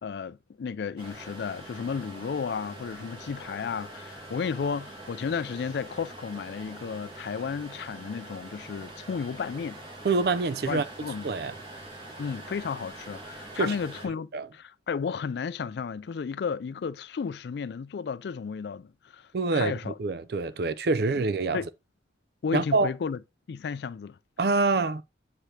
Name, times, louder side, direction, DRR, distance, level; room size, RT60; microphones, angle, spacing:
voice 1, 0.0-9.8 10.7-11.3 12.2-20.0 21.5-21.6 22.4-23.2 23.5-24.2, left 6 dB, 65° left, 0.3 m, -33 dB
sound 1, 1.0-14.1, right 1 dB, 30° right, 1.9 m, -44 dB
voice 2, 10.0-10.8 11.2-11.5 13.5-13.8 14.3-14.5 19.3-21.6 22.5-22.9 24.4-25.0, right 3 dB, 60° right, 0.5 m, -26 dB
7.6 x 5.0 x 2.8 m
head